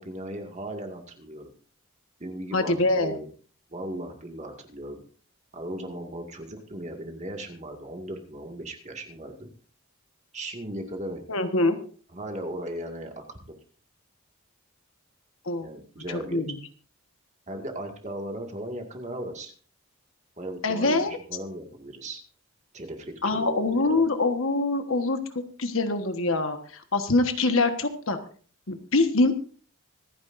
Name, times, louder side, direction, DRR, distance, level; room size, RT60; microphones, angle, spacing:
voice 1, 0.0-1.5 2.2-3.3 3.7-5.0 5.5-9.5 10.3-11.2 12.1-13.5 15.6-16.5 17.5-19.5 20.4-22.2 22.7-24.1, right 1 dB, 30° right, 3 dB, 2.0 m, -37 dB
voice 2, 2.5-3.2 11.3-11.8 15.4-15.7 16.3-16.6 20.6-21.1 23.2-25.2 25.6-28.2 28.7-29.3, left 2 dB, 65° left, 7 dB, 1.4 m, -24 dB
25.0 x 9.7 x 2.6 m, 0.42 s
head